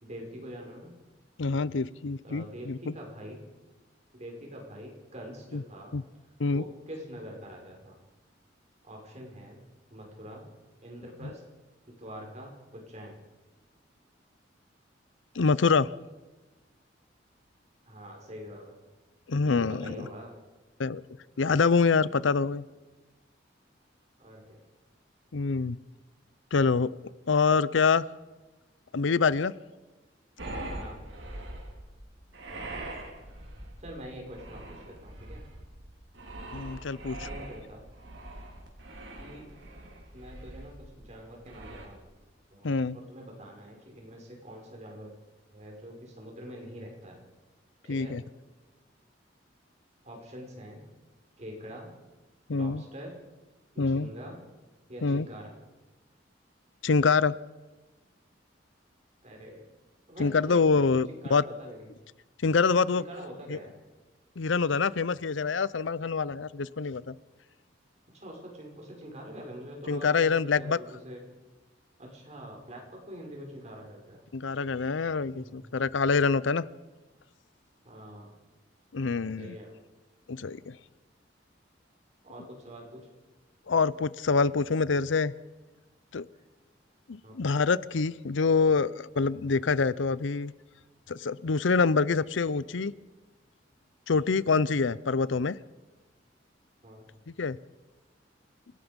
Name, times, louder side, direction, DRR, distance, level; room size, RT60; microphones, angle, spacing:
voice 1, 0.0-0.9 2.2-3.4 4.1-5.9 6.5-8.0 8.8-9.6 9.9-10.5 10.8-11.4 11.9-13.2 17.9-18.8 19.4-20.3 24.2-24.6 30.7-31.0 33.8-35.4 37.2-37.8 39.2-39.5 40.1-42.0 42.5-45.1 45.5-47.2 47.8-48.1 50.0-50.8 51.4-51.9 52.5-53.1 53.7-54.4 54.9-55.5 59.2-59.6 60.1-61.9 62.9-63.8 68.1-71.2 72.0-74.3 75.3-75.6 77.8-78.3 79.4-79.7 82.2-83.1 86.3-86.5 87.2-87.7 96.8-97.1, equal, 40° right, 0 dB, 5.5 m, -44 dB
voice 2, 1.4-2.9 5.5-5.6 5.9-6.0 6.4-6.6 15.3-15.9 19.3-19.9 20.8-21.0 21.4-22.6 25.3-25.8 26.5-26.9 27.3-28.0 28.9-29.5 36.5-37.3 42.6-43.0 47.9-48.2 52.5-52.8 53.8-54.1 55.0-55.3 56.8-57.3 60.2-61.4 62.4-63.0 63.5-63.6 64.4-67.1 69.9-70.8 74.3-76.7 78.9-79.5 80.3-80.8 83.7-85.3 86.1-86.3 87.1-90.5 91.1-92.9 94.1-95.6 97.4-97.6, left 4 dB, 85° left, 19 dB, 0.6 m, -25 dB
sound 1, 30.4-41.9, right 1 dB, 80° right, 4.2 m, -42 dB
29.0 x 17.5 x 5.3 m, 1.2 s
head